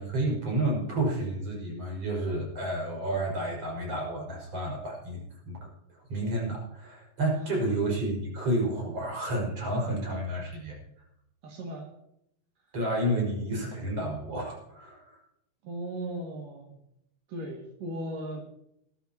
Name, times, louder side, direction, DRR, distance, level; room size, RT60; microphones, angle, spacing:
voice 1, 0.0-10.8 12.7-15.2, right 1 dB, 45° right, -1 dB, 6.6 m, -30 dB
voice 2, 11.4-11.9 15.6-16.8 17.3-18.6, right 1 dB, 70° right, 0 dB, 3.9 m, -37 dB
21.0 x 12.5 x 3.0 m, 0.75 s
omnidirectional pair, 4.0 m